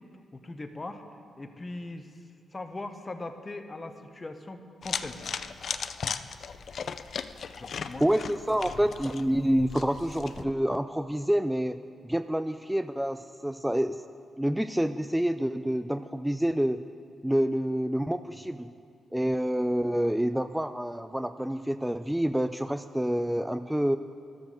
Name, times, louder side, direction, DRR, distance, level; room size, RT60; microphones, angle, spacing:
voice 1, 0.3-1.0 1.4-2.1 2.5-5.3 7.5-8.2 8.7-8.8 19.2-19.3, left 2 dB, 30° left, 8 dB, 1.1 m, -40 dB
sound 1, 4.8-10.4, left 6 dB, 65° left, 0.4 m, -37 dB
voice 2, 8.0-11.8 12.0-14.0 14.4-16.8 17.2-18.7 19.1-24.0, equal, 5° right, 10 dB, 0.4 m, -27 dB
12.5 x 7.2 x 6.6 m, 2.3 s
supercardioid pair, 55°, 0 cm